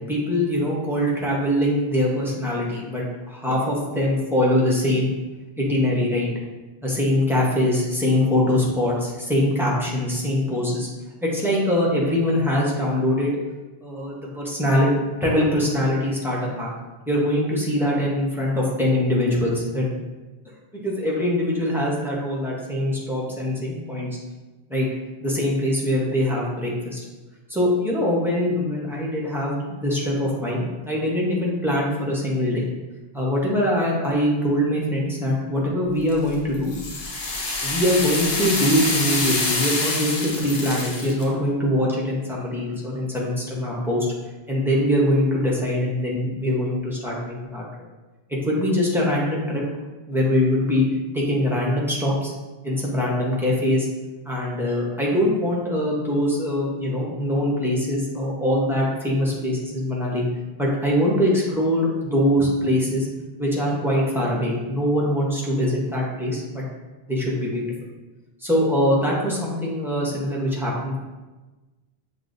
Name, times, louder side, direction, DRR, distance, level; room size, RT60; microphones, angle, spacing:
voice 1, 0.1-5.1 5.6-6.3 6.8-10.9 11.2-13.4 13.8-16.7 17.1-19.9 20.5-24.1 24.7-24.9 25.2-27.0 27.5-32.7 33.1-36.7 37.6-44.1 44.5-47.7 48.5-49.6 50.1-50.8 51.1-52.3 52.6-53.9 54.3-60.2 60.6-63.1 63.4-66.6 67.1-67.7 68.4-71.0, left 1 dB, 5° right, -5 dB, 0.8 m, -23 dB
sound 1, 36.1-41.2, left 2 dB, 75° left, 1.1 m, -26 dB
6.7 x 2.3 x 2.6 m, 1.2 s
omnidirectional pair, 1.0 m